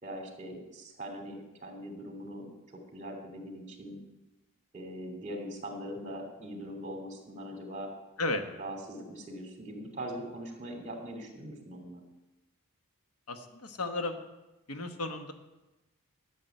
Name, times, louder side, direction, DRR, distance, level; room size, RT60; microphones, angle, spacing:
voice 1, 0.0-4.0 4.7-7.9 8.6-12.0, equal, 35° right, 2 dB, 2.9 m, -41 dB
voice 2, 13.3-14.2 14.7-15.3, left 2 dB, 70° left, 6 dB, 1.2 m, -34 dB
12.0 x 7.1 x 9.2 m, 1.0 s
head